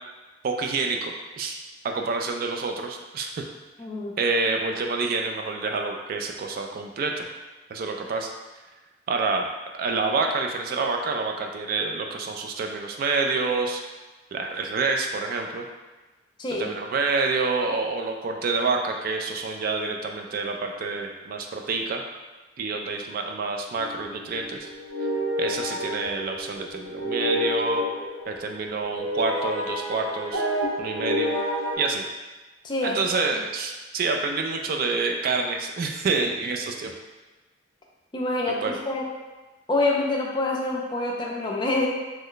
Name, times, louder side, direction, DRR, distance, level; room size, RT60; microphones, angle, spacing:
voice 1, 0.4-1.6 1.8-3.4 4.2-7.3 7.7-8.3 9.1-9.5 9.8-13.8 14.3-15.7 16.6-22.0 22.6-24.7 25.4-27.8 28.3-30.5 30.8-31.3 31.8-32.0 32.8-36.9 38.6-38.8, right 3 dB, 50° right, 3 dB, 0.3 m, -27 dB
voice 2, 3.8-4.1 16.4-16.7 32.6-33.0 38.1-39.1 39.7-41.9, left 2 dB, 25° left, -1 dB, 0.4 m, -26 dB
sound 1, 23.8-31.7, equal, 85° right, 0.6 m, -30 dB
3.0 x 2.1 x 3.8 m, 1.2 s
head